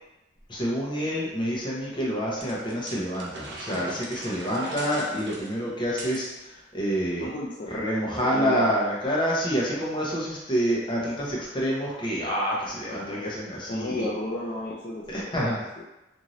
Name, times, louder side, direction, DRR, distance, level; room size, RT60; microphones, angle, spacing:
voice 1, 0.5-7.3 7.7-14.0 15.1-15.7, equal, 25° left, -5 dB, 0.8 m, -27 dB
sound 1, 2.4-6.3, right 2 dB, 65° right, 0.5 m, -40 dB
voice 2, 4.5-5.1 7.2-7.7 8.2-8.7 12.9-13.4 13.7-15.8, left 1 dB, 45° left, -5 dB, 0.4 m, -34 dB
2.6 x 2.6 x 3.0 m, 0.98 s
head